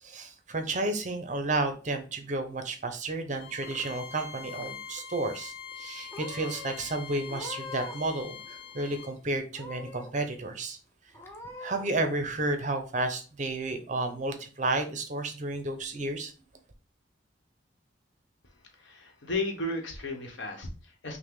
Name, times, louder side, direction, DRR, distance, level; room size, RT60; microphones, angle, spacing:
voice 1, 0.0-10.8 11.6-16.3, right 2 dB, 40° right, 7 dB, 0.7 m, -32 dB
Purr / Meow, 3.3-4.2 4.5-5.0 5.7-5.9 6.1-6.7 7.2-8.1 8.4-9.1 9.5-10.1 10.6-10.7 11.1-11.9, left 3 dB, 15° left, 0.6 m, -43 dB
Bowed string instrument, 3.4-9.1, left 7 dB, 55° left, 0.7 m, -44 dB
voice 2, 18.8-21.2, left 2 dB, 75° left, 4 dB, 1.0 m, -34 dB
5.9 x 2.1 x 3.6 m, 0.36 s
head